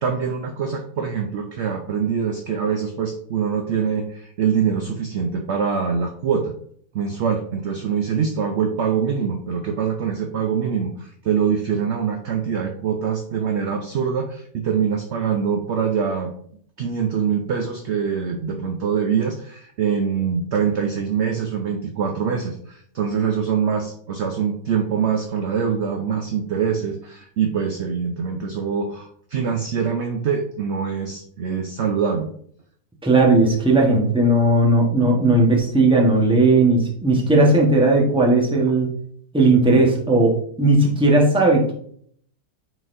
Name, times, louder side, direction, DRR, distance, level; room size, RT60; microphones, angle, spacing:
voice 1, 0.0-6.5 6.9-16.3 16.8-32.3, right 7 dB, 60° right, 4 dB, 0.7 m, -24 dB
voice 2, 33.0-38.9 39.3-41.7, right 2 dB, 5° right, -2 dB, 1.0 m, -16 dB
9.1 x 4.1 x 2.6 m, 0.63 s
omnidirectional pair, 1.7 m